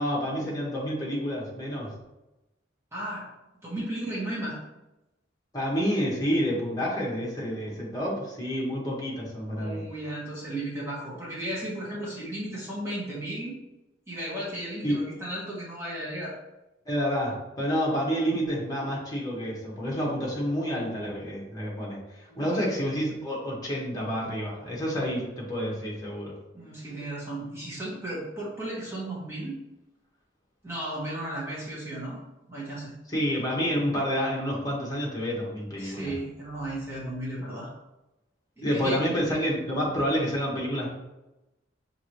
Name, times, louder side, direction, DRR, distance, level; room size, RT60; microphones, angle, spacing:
voice 1, 0.0-1.9 5.5-9.8 14.8-15.0 16.8-26.3 33.1-36.1 38.6-40.9, equal, 20° left, -4 dB, 1.2 m, -29 dB
voice 2, 2.9-3.3 3.6-4.6 9.6-13.6 14.1-16.3 22.3-22.6 26.5-29.6 30.6-32.2 32.5-32.9 35.8-37.7 38.6-39.0, right 1 dB, 15° right, -6 dB, 1.1 m, -35 dB
5.9 x 2.7 x 3.0 m, 0.97 s
head